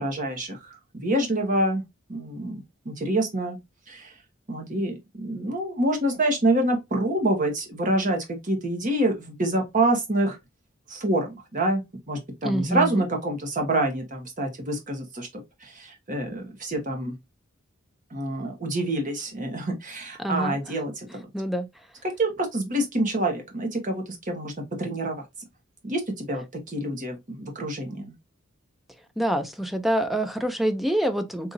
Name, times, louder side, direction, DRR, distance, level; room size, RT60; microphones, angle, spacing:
voice 1, 0.0-1.8 2.1-3.6 3.9-4.1 4.5-10.4 10.9-11.8 12.1-15.3 15.6-17.1 18.1-21.2 22.2-24.5 24.8-25.2 25.8-28.1, right 1 dB, 40° right, 1.2 m, -27 dB
voice 2, 12.4-13.0 20.2-20.6 21.3-21.7 29.2-31.5, right 1 dB, ahead, 0.4 m, -26 dB
3.9 x 2.7 x 2.5 m
head